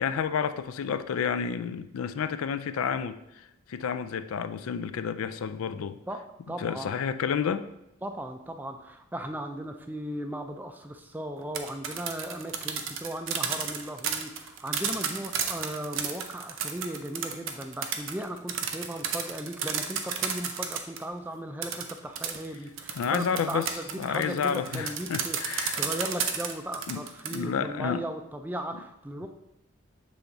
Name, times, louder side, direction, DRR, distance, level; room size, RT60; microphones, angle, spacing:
voice 1, 0.0-6.0 6.6-7.6 22.9-23.7 24.0-25.9 26.9-27.0 27.3-28.1, left 7 dB, 90° left, 0.3 m, -30 dB
voice 2, 6.5-6.9 8.0-29.3, right 1 dB, 10° right, 0.3 m, -37 dB
sound 1, 11.4-21.0 21.6-27.4, right 7 dB, 70° right, 0.6 m, -32 dB
7.3 x 3.4 x 3.9 m
head